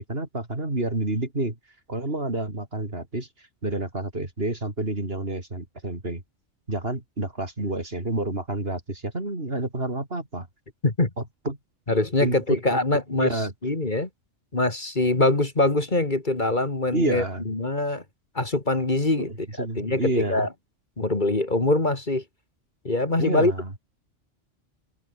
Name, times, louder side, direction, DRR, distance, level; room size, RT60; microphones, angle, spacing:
voice 1, 0.0-1.6 1.9-6.2 6.7-10.5 11.2-11.6 12.2-12.8 13.2-13.5 16.9-17.5 19.2-20.5 23.2-23.7, right 2 dB, 50° right, 4.5 m, -29 dB
voice 2, 11.9-13.3 13.6-14.1 14.5-18.0 18.3-19.3 19.6-20.5 21.0-22.2 22.8-23.5, left 2 dB, 40° left, 2.6 m, -23 dB
open air
omnidirectional pair, 1.2 m